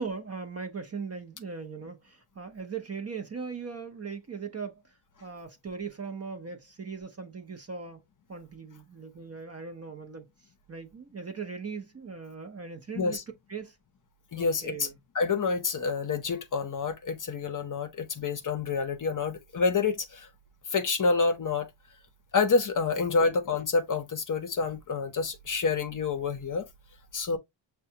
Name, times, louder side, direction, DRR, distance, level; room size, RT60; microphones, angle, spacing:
voice 1, 0.0-4.8 5.2-8.0 8.3-10.3 10.7-13.2 13.5-13.8 14.3-15.0 23.2-23.4, right 5 dB, 30° right, 0.6 m, -39 dB
voice 2, 14.3-14.9 15.1-20.3 20.7-21.7 22.3-26.7 27.1-27.4, left 4 dB, 40° left, 0.6 m, -28 dB
6.6 x 2.2 x 2.7 m
wide cardioid pair, 140°, 49 cm